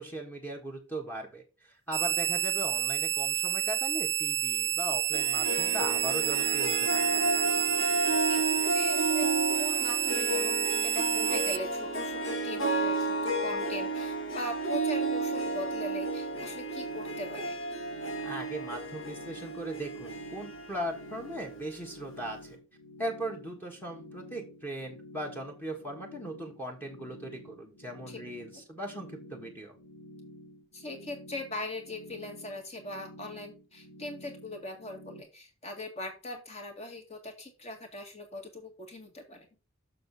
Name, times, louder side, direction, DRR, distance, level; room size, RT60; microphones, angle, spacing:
voice 1, 0.0-7.0 18.2-22.6 23.0-29.7, right 1 dB, 10° left, -1 dB, 1.4 m, -39 dB
sound 1, 1.9-11.6, right 11 dB, 50° right, 0.5 m, -29 dB
Harp, 5.1-21.9, right 2 dB, 60° left, 2.2 m, -32 dB
voice 2, 8.2-9.3 9.6-17.6 28.1-28.2 30.7-39.5, left 1 dB, 30° left, 5 dB, 1.9 m, -40 dB
sound 2, 16.3-35.2, left 1 dB, 90° left, 4.2 m, -50 dB
6.6 x 6.6 x 4.0 m, 0.30 s
head